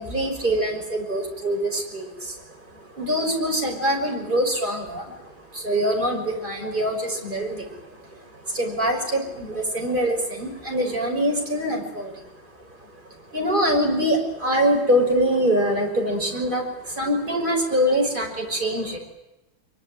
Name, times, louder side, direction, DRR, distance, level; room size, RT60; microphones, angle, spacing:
voice 1, 0.0-12.3 12.7-12.9 13.2-19.0, equal, 20° right, 1 dB, 6.1 m, -24 dB
24.0 x 23.5 x 9.3 m, 0.98 s
omnidirectional pair, 2.3 m